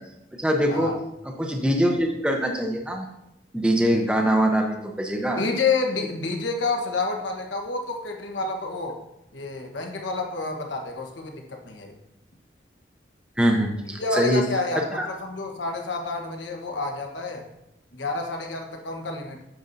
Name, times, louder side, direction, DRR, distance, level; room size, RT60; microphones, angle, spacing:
voice 1, 0.4-1.0 1.2-3.1 3.5-5.4 13.4-14.5 14.8-15.1, equal, 5° right, 2 dB, 0.7 m, -23 dB
voice 2, 5.4-9.0 9.3-11.9 14.0-17.5 17.9-19.4, left 3 dB, 90° left, 3 dB, 1.2 m, -29 dB
8.9 x 6.8 x 2.7 m, 0.86 s
head